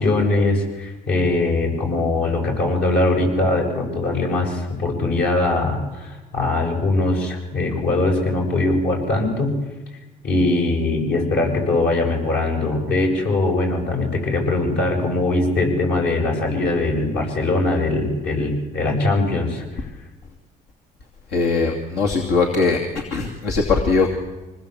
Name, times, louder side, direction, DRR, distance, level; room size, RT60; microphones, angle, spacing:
voice 1, 0.0-9.5 10.2-19.9, left 2 dB, 70° left, 1 dB, 7.9 m, -21 dB
voice 2, 21.3-24.1, left 4 dB, 90° left, 1 dB, 2.8 m, -20 dB
25.5 x 20.0 x 8.3 m, 1.1 s
cardioid pair, 110°, 17 cm